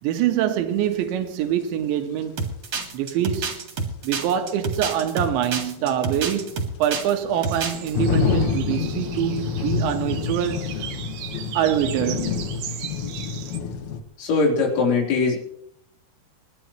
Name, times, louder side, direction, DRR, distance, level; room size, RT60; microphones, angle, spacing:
voice 1, 0.0-2.3 2.9-3.5 4.0-6.5 6.8-10.7 11.5-12.5, right 10 dB, 85° right, 3.6 m, -24 dB
sound 1, 1.0-1.1 3.6-3.7 4.1-4.2 5.8-14.0, left 5 dB, 65° left, 1.9 m, -27 dB
sound 2, 2.4-7.1 7.4-7.9, right 4 dB, 45° right, 2.6 m, -28 dB
sound 3, 7.3-13.6, right 10 dB, 70° right, 2.4 m, -38 dB
voice 2, 14.2-15.4, left 4 dB, 85° left, 6.1 m, -21 dB
28.5 x 11.5 x 3.1 m
omnidirectional pair, 5.1 m